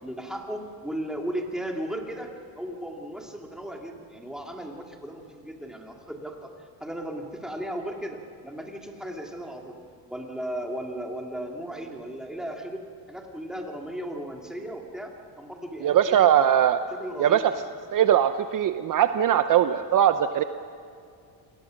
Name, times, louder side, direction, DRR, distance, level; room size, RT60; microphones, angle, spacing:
voice 1, 0.0-9.7 10.1-16.3 16.9-17.5, right 1 dB, ahead, 1 dB, 2.5 m, -36 dB
voice 2, 15.8-16.8 17.2-17.4 17.9-20.4, right 10 dB, 50° right, 10 dB, 0.7 m, -20 dB
28.0 x 20.0 x 6.5 m, 2.3 s
cardioid pair, 140°, 42 cm